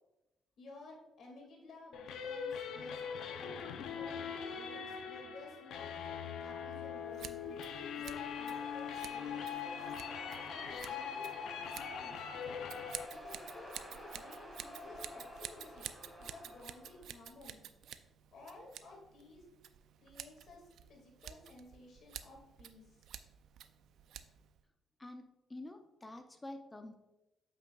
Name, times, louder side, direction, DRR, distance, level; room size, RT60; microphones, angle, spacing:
voice 1, 0.6-3.6 3.9-7.4 8.0-9.9 10.5-12.3 13.1-15.9 16.2-17.7 18.3-19.4 20.0-23.1, left 2 dB, 65° left, 0 dB, 2.0 m, -55 dB
sound 1, 1.9-13.1, left 7 dB, 80° left, 0.5 m, -42 dB
Scissors, 7.1-24.6, right 9 dB, 75° right, 0.3 m, -51 dB
sound 2, 7.4-17.1, left 1 dB, ahead, 2.1 m, -51 dB
voice 2, 25.0-27.0, left 2 dB, 20° left, 7 dB, 0.6 m, -48 dB
8.1 x 5.9 x 2.3 m, 0.98 s
cardioid pair, 90°, 0 cm